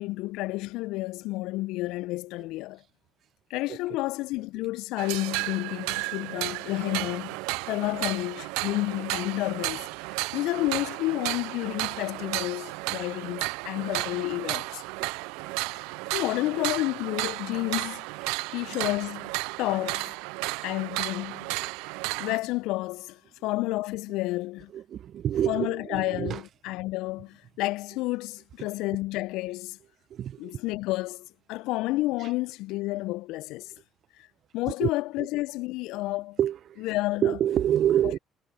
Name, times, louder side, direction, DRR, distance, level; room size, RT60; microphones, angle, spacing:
voice 1, 0.0-2.8 3.5-7.3 7.7-9.8 10.3-14.8 16.1-18.1 18.5-19.3 19.6-20.1 20.6-21.5 22.2-24.7 25.5-29.8 30.4-33.7 34.5-36.4 36.8-37.4, left 19 dB, 65° left, 1.2 m, -30 dB
sound 1, 5.0-22.4, right 28 dB, 70° right, 0.6 m, -33 dB
voice 2, 24.7-26.4 30.1-30.5 34.8-34.9 36.4-36.6 37.2-38.2, right 10 dB, 55° right, 1.1 m, -26 dB
figure-of-eight pair, 50°, 0 cm